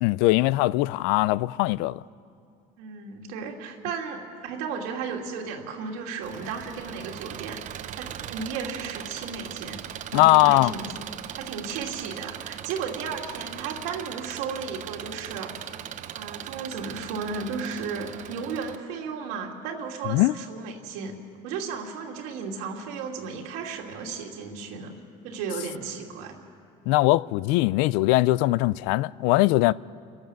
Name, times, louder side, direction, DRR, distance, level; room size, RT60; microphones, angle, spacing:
voice 1, 0.0-2.0 10.1-10.7 20.1-20.3 26.9-29.7, left 19 dB, 80° left, 0.4 m, -21 dB
voice 2, 2.8-9.8 10.1-10.8 11.4-15.7 16.1-21.2 21.4-24.9 25.2-26.3, right 5 dB, 90° right, 2.8 m, -34 dB
Engine, 6.2-18.8, right 11 dB, 45° right, 0.7 m, -39 dB
29.5 x 12.5 x 7.6 m
cardioid pair, 125°, 17 cm